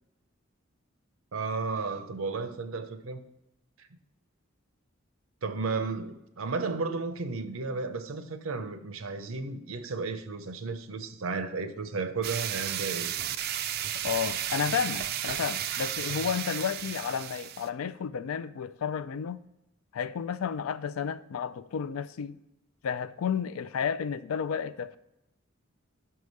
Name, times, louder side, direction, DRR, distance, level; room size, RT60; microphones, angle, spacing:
voice 1, 1.3-3.2 3.8-3.9 5.4-13.1, right 4 dB, 80° right, 0.6 m, -33 dB
sound 1, 12.2-17.7, right 11 dB, 50° right, 0.3 m, -33 dB
voice 2, 14.0-19.4 19.9-22.4 22.8-25.0, left 7 dB, 85° left, 0.4 m, -32 dB
5.7 x 4.8 x 5.3 m
head